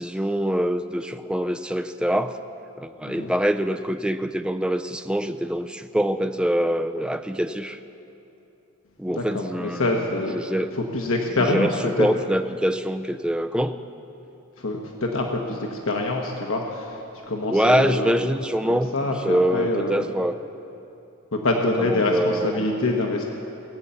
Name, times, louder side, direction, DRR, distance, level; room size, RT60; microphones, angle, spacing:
voice 1, 0.0-2.4 2.8-7.8 9.0-9.8 10.3-10.7 11.3-11.7 12.0-13.8 17.5-18.9 19.2-20.4 21.8-22.7, equal, 5° right, 9 dB, 0.4 m, -24 dB
voice 2, 9.1-10.4 10.7-12.1 14.6-17.0 17.3-18.2 18.7-20.1 21.3-23.3, left 2 dB, 65° left, 1 dB, 1.1 m, -25 dB
18.0 x 8.8 x 6.9 m, 2.8 s
head